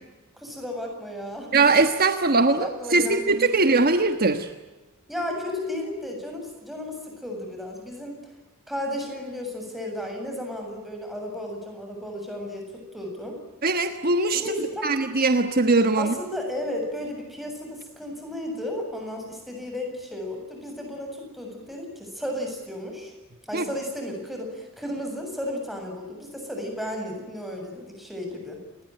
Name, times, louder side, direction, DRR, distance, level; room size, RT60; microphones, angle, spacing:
voice 1, 0.4-1.7 2.6-3.6 5.1-8.2 8.7-13.4 14.3-15.0 15.9-23.1 23.5-28.6, left 1 dB, ahead, 2 dB, 7.6 m, -34 dB
voice 2, 1.5-4.5 13.6-14.4 14.8-16.1 23.5-23.6, right 3 dB, 45° right, 8 dB, 1.3 m, -21 dB
29.0 x 20.0 x 9.1 m, 1.2 s
head